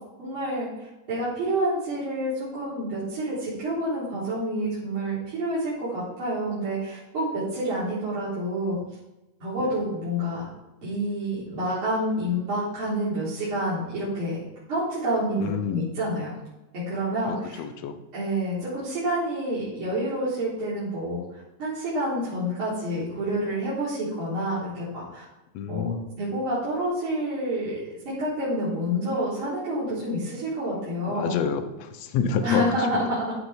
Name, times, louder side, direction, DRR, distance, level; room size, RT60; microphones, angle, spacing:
voice 1, 0.2-8.8 9.4-10.5 10.8-14.4 14.7-15.4 15.7-16.4 16.7-17.6 18.1-25.2 25.7-31.4 32.4-33.3, right 1 dB, 35° right, -11 dB, 4.5 m, -28 dB
voice 2, 15.4-15.8 17.3-18.0 25.5-26.1 31.1-32.7, left 6 dB, 70° left, 8 dB, 1.6 m, -28 dB
14.0 x 5.4 x 5.0 m, 1.0 s
omnidirectional pair, 3.9 m